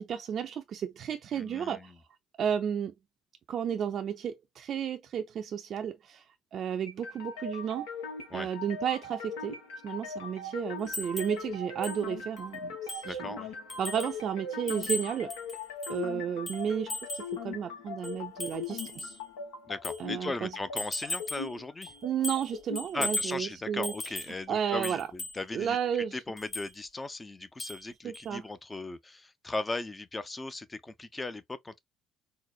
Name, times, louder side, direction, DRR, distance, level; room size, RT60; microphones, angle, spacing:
voice 1, 0.0-1.9 2.4-2.9 3.5-6.2 6.5-7.9 8.3-9.6 9.8-12.7 13.0-13.2 13.8-15.3 15.9-19.2 20.0-20.5 22.0-23.9 24.5-25.1 25.5-26.2 28.0-28.4, right 8 dB, 55° right, 0.4 m, -32 dB
voice 2, 1.3-1.9 8.3-8.5 13.0-13.5 19.7-21.9 22.9-25.8 26.1-31.8, left 2 dB, 20° left, 0.5 m, -37 dB
sound 1, 6.9-22.9, left 4 dB, 80° left, 0.8 m, -40 dB
sound 2, 10.9-11.4 11.8-12.0 12.4-12.5 12.9-13.2 13.7-14.2 14.7-16.0 16.5-17.3 18.0-19.2 19.8-20.0 20.8-21.5 21.8-22.5 22.8-23.4 23.8-24.4 24.8-25.4 26.4-26.7 27.6-27.9 28.1-28.3, left 1 dB, 40° left, 2.0 m, -37 dB
4.0 x 2.0 x 2.4 m
hypercardioid pair, 55°, 0 cm